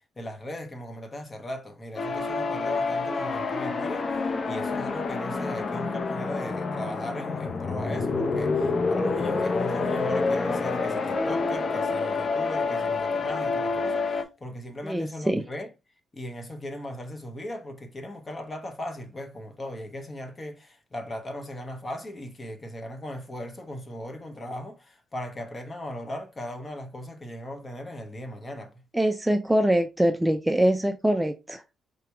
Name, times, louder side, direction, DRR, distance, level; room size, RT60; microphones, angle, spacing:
voice 1, 0.2-15.7 16.1-28.8, left 1 dB, 25° left, 1.2 m, -38 dB
sound 1, 2.0-14.2, left 4 dB, 40° left, 0.7 m, -28 dB
voice 2, 14.8-15.4 28.9-31.6, right 1 dB, 5° right, 0.4 m, -23 dB
4.8 x 3.0 x 3.4 m
cardioid pair, 90°, 0 cm